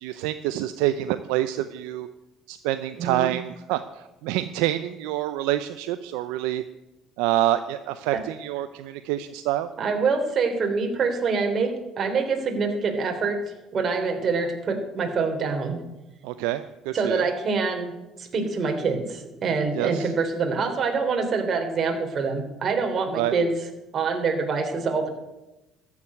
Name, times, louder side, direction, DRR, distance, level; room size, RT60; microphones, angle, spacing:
voice 1, 0.0-2.1 2.5-6.6 7.2-9.7 16.2-17.3 19.8-20.1 23.1-23.3, right 13 dB, 85° right, 11 dB, 0.6 m, -27 dB
voice 2, 3.0-3.3 8.1-8.2 9.8-13.4 13.7-15.8 16.9-17.9 18.2-23.5 23.9-25.1, right 4 dB, 45° right, 4 dB, 3.3 m, -25 dB
13.5 x 7.3 x 9.6 m, 1.0 s
supercardioid pair, 80°, 0 cm